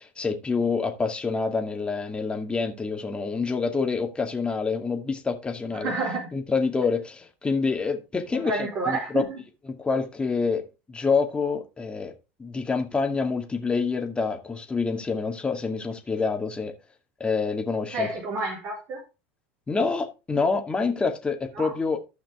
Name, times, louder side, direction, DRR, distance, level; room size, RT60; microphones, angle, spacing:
voice 1, 0.0-5.9 6.3-9.2 9.7-12.1 12.4-16.7 17.2-18.1 19.7-22.0, left 4 dB, 15° left, 2.2 m, -27 dB
voice 2, 5.8-6.3 8.3-9.4 17.9-19.0 21.6-21.7, right 2 dB, 45° right, 4.1 m, -29 dB
14.0 x 5.9 x 3.6 m
hypercardioid pair, 100°, 6 cm